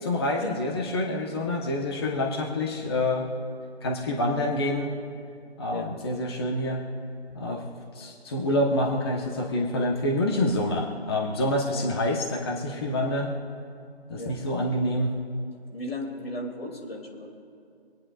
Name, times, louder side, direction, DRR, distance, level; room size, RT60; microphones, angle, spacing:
voice 1, 0.0-3.3 3.8-4.9 5.6-6.8 7.3-7.6 7.9-13.3 14.1-15.1, left 1 dB, 25° left, -1 dB, 1.1 m, -27 dB
voice 2, 7.3-7.7 11.7-11.9 14.2-14.3 15.7-17.3, left 1 dB, 60° left, 1 dB, 2.8 m, -36 dB
26.0 x 9.5 x 2.5 m, 2.4 s
figure-of-eight pair, 160°, 33 cm